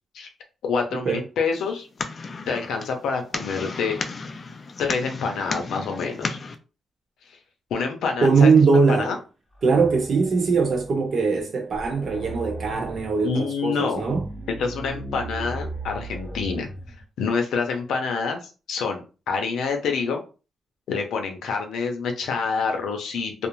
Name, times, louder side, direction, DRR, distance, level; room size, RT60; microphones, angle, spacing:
voice 1, 0.6-1.9 2.5-4.0 4.8-6.4 7.7-9.2 13.2-14.0 14.6-16.7 17.2-18.4 18.7-20.2 20.9-23.5, left 5 dB, 90° left, 0.6 m, -27 dB
sound 1, 1.5-6.6, left 4 dB, 40° left, 0.3 m, -34 dB
voice 2, 8.2-9.1 9.6-14.2, right 4 dB, 55° right, 0.7 m, -20 dB
sound 2, 9.5-11.0 11.4-11.5 11.7-13.3 13.9-17.0, right 1 dB, 10° left, 0.8 m, -37 dB
2.5 x 2.0 x 3.0 m
cardioid pair, 110°, 0 cm